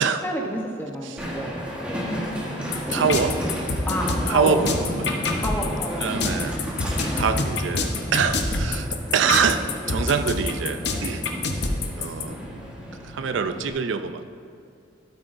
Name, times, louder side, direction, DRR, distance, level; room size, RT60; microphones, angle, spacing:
voice 1, 0.0-1.7 3.9-4.6 5.4-7.6 10.9-11.1, equal, 10° left, 0 dB, 0.8 m, -32 dB
Train, 1.2-13.7, equal, 5° right, 1.3 m, -32 dB
voice 2, 2.4-3.4 4.3-5.1 6.0-6.6 7.1-11.2 11.9-12.4 13.0-14.2, right 6 dB, 80° right, 10 dB, 0.4 m, -25 dB
sound 1, 2.7-12.2, left 3 dB, 60° left, 0.8 m, -26 dB
13.0 x 8.1 x 2.6 m, 2.5 s
head